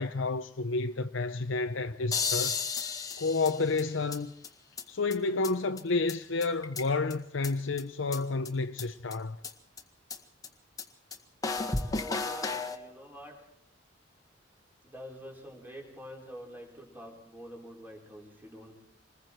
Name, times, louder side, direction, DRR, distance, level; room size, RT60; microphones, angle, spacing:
voice 1, 0.0-2.6 3.2-4.3 4.9-9.4, left 3 dB, 80° left, 0.8 m, -30 dB
sound 1, 2.1-4.2 4.4-4.5 4.8-4.9 5.1-5.2 5.4-5.5 5.8-5.9 6.1-6.2 6.4-7.1 7.4-7.5 7.8-7.9 8.1-8.2 8.4-8.5 8.8-8.9 9.1-9.2 9.4-9.5 9.8-9.9 10.1-10.2 10.4-10.5 10.8-10.9 11.1-11.2 11.4-12.8, left 4 dB, 20° left, 1.7 m, -33 dB
voice 2, 12.1-13.4 14.8-18.7, equal, 10° right, 4.4 m, -47 dB
26.5 x 21.5 x 4.6 m
head